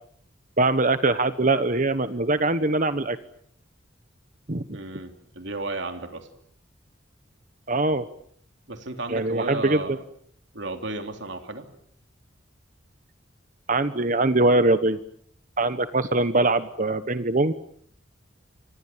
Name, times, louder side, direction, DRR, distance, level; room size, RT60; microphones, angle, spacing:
voice 1, 0.6-3.2 4.5-4.6 7.7-8.1 9.1-9.8 13.7-15.0 15.6-17.5, right 2 dB, 40° right, 11 dB, 1.1 m, -22 dB
voice 2, 4.7-6.3 8.7-10.0 10.5-11.7, right 2 dB, 65° right, 6 dB, 3.2 m, -33 dB
29.5 x 25.5 x 7.4 m, 0.65 s
head